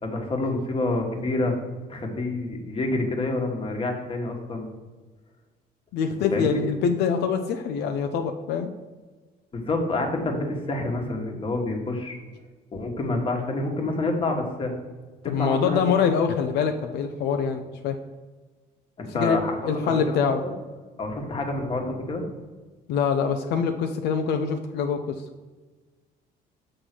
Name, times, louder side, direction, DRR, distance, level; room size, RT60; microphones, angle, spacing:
voice 1, 0.0-1.6 1.9-4.6 6.3-6.6 9.5-12.2 12.7-14.7 15.2-15.8 19.0-20.5 21.0-22.2, left 2 dB, 30° left, 2 dB, 1.4 m, -28 dB
voice 2, 5.9-8.7 15.3-18.0 19.1-19.4 19.7-20.4 22.9-25.2, left 6 dB, 80° left, 6 dB, 0.6 m, -24 dB
6.4 x 3.8 x 6.0 m, 1.3 s
cardioid pair, 110°, 17 cm